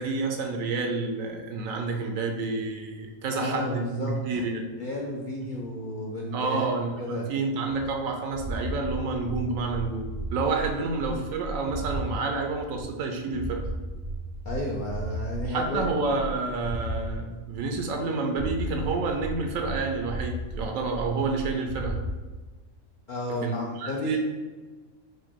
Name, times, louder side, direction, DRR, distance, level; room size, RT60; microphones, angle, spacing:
voice 1, 0.0-4.6 6.3-13.7 15.4-22.0 23.4-24.2, right 3 dB, 75° right, 3 dB, 1.0 m, -29 dB
voice 2, 3.3-4.5 4.8-6.7 7.0-7.2 14.4-16.0 23.1-24.2, left 1 dB, 65° left, -2 dB, 0.5 m, -32 dB
sound 1, 7.7-12.2 12.5-17.2 17.5-18.1 18.3-22.2, right 1 dB, 50° right, 0.6 m, -35 dB
4.9 x 2.2 x 4.4 m, 1.3 s
omnidirectional pair, 1.4 m